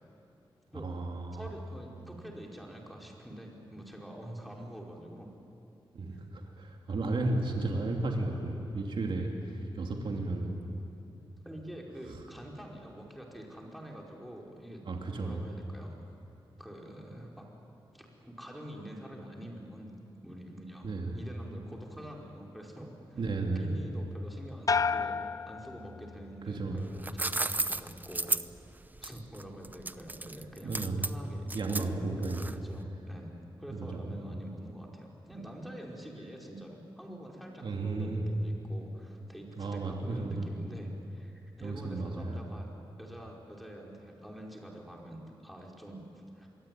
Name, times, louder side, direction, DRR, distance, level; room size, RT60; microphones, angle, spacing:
voice 1, 0.7-1.5 5.9-9.3 9.7-10.6 14.9-15.4 20.8-21.1 23.2-23.7 26.5-26.8 30.6-31.0 31.5-32.5 33.7-34.2 37.6-38.2 39.6-40.5 41.6-42.4, right 2 dB, 65° right, 1 dB, 3.0 m, -33 dB
voice 2, 1.3-5.3 6.1-6.2 11.4-14.9 15.1-16.0 16.6-17.5 17.9-23.2 23.5-25.2 25.5-28.3 29.0-42.7 43.0-46.5, equal, ahead, -1 dB, 5.0 m, -46 dB
sound 1, 24.7-26.4 26.8-27.4, left 5 dB, 40° left, 0.6 m, -32 dB
sound 2, 26.8-32.8, right 2 dB, 20° right, 0.7 m, -34 dB
27.0 x 22.0 x 9.3 m, 2.7 s
wide cardioid pair, 95°, 9 cm